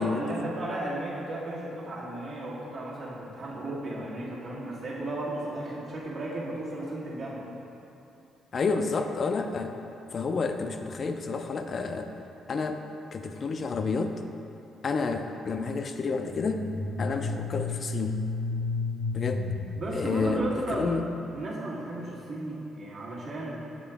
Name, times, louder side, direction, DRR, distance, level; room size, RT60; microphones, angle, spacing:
voice 1, 0.0-7.5 19.7-21.0 21.3-23.6, right 1 dB, 60° right, -6 dB, 1.4 m, -34 dB
voice 2, 8.5-9.8 10.1-12.1 12.5-12.8 13.1-14.2 14.8-16.7 17.0-18.2 19.1-19.5 19.9-21.1, left 4 dB, 45° left, 6 dB, 0.4 m, -30 dB
sound 1, 16.3-21.1, left 3 dB, 75° left, 0.7 m, -33 dB
7.4 x 3.7 x 3.4 m, 2.9 s
cardioid pair, 90°, 0 cm